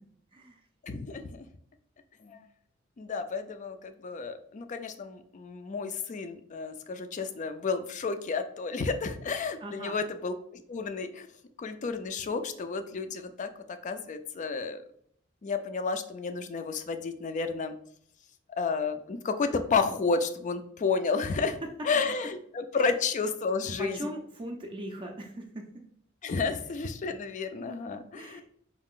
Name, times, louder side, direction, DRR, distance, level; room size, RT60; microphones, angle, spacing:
voice 1, 0.8-1.5 2.2-2.4 3.0-11.3 11.6-13.5 13.8-14.8 15.4-17.8 18.6-21.6 21.8-24.1 26.2-28.4, left 4 dB, 40° left, 9 dB, 0.4 m, -31 dB
voice 2, 9.6-10.0 22.7-22.9 23.8-25.8 26.5-26.6 28.1-28.4, equal, 25° right, 2 dB, 0.4 m, -40 dB
4.7 x 2.4 x 3.6 m, 0.66 s
head